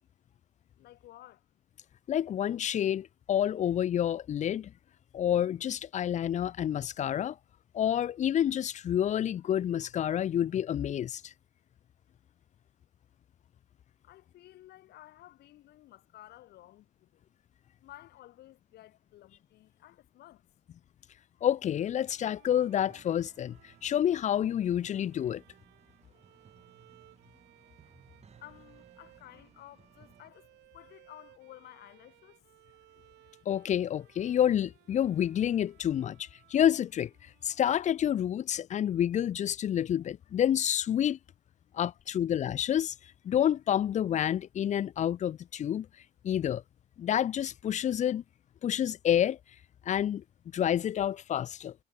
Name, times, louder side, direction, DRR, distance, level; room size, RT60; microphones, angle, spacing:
voice 1, 0.8-1.5 14.0-17.3 17.8-20.4 28.4-32.4, left 15 dB, 75° left, 5.0 m, -54 dB
voice 2, 2.1-4.7 5.1-7.4 7.7-11.3 21.4-23.6 23.8-25.4 33.5-37.1 37.4-41.2 41.7-42.9 43.2-45.9 46.2-46.6 47.0-48.2 48.6-49.4 49.9-50.2 50.5-51.7, left 10 dB, 45° left, 0.7 m, -28 dB
Bowed string instrument, 22.0-38.5, right 18 dB, 85° right, 3.7 m, -62 dB
sound 1, 22.7-30.3, right 7 dB, 40° right, 5.3 m, -61 dB
cardioid pair, 110°, 17 cm